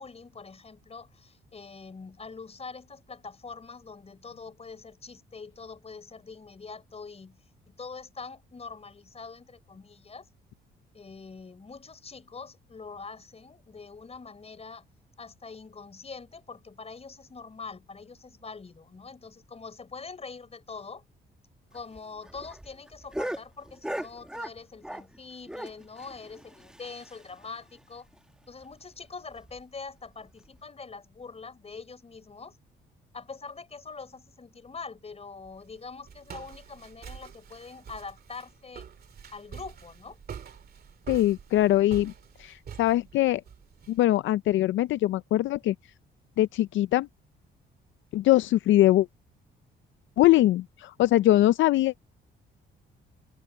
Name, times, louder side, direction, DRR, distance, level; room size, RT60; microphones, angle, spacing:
voice 1, 0.0-7.4 7.7-10.3 10.9-14.8 15.2-21.0 21.7-28.1 28.5-32.6 33.1-38.9 39.3-40.2, left 4 dB, 30° left, 4.8 m, -44 dB
sound 1, 21.7-25.2 25.5-27.5 27.8-27.9 28.1-28.2 28.6-28.7 29.3-29.6 30.4-30.6, right 1 dB, 5° right, 1.2 m, -38 dB
Walk footsteps, 35.4-44.0, right 7 dB, 50° right, 2.3 m, -46 dB
voice 2, 41.1-42.1 42.4-43.4 43.9-45.7 46.4-47.1 48.1-49.1 50.2-51.9, left 15 dB, 75° left, 0.5 m, -22 dB
cardioid pair, 90°, 20 cm